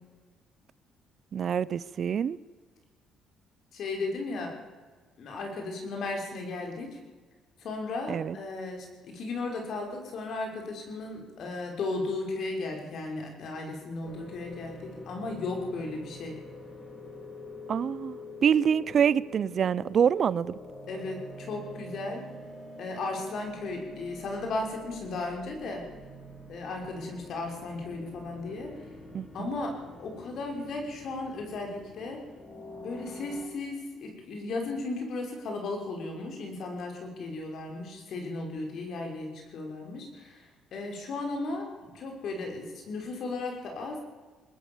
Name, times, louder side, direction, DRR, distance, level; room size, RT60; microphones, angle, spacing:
voice 1, 1.3-2.4 8.1-8.4 17.7-20.6 29.1-29.5, right 8 dB, 50° right, 19 dB, 0.6 m, -26 dB
voice 2, 3.7-4.5 5.2-7.0 7.6-16.4 20.9-22.2 22.8-25.8 26.5-28.7 29.3-32.2 32.8-44.0, left 3 dB, 60° left, 2 dB, 6.0 m, -35 dB
sound 1, 14.0-33.4, left 1 dB, 20° left, 5.1 m, -46 dB
21.5 x 20.0 x 7.3 m, 1.4 s
cardioid pair, 95°, 0 cm